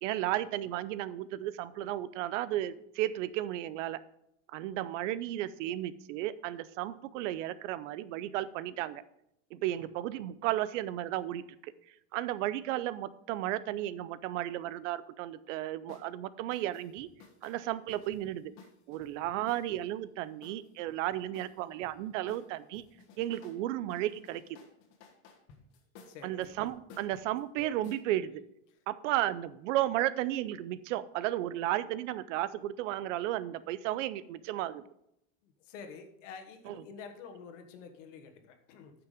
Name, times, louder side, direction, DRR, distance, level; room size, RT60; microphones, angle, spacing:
voice 1, 0.0-4.0 4.5-9.0 9.5-11.7 12.1-17.1 17.4-18.5 18.9-22.8 23.2-24.6 26.2-28.4 28.9-34.8 36.7-36.8, right 13 dB, 85° right, 17 dB, 0.6 m, -34 dB
sound 1, 15.9-16.1 16.5-19.8 20.4-21.9 22.3-23.6 23.9-28.0, left 5 dB, 50° left, 1.5 m, -56 dB
voice 2, 26.0-26.5 28.7-28.8 35.4-38.9, left 6 dB, 90° left, 7 dB, 1.6 m, -49 dB
9.6 x 6.0 x 5.0 m, 0.77 s
supercardioid pair, 155°, 36 cm